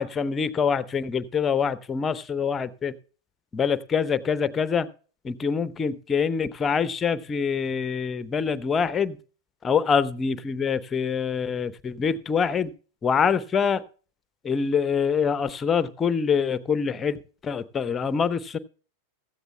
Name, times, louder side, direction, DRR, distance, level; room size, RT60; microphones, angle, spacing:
voice 1, 0.0-2.9 3.5-4.9 5.2-9.2 9.6-12.7 13.0-13.8 14.4-18.6, left 6 dB, 20° left, 0.8 m, -25 dB
16.0 x 13.5 x 2.2 m
figure-of-eight pair, 90°, 0 cm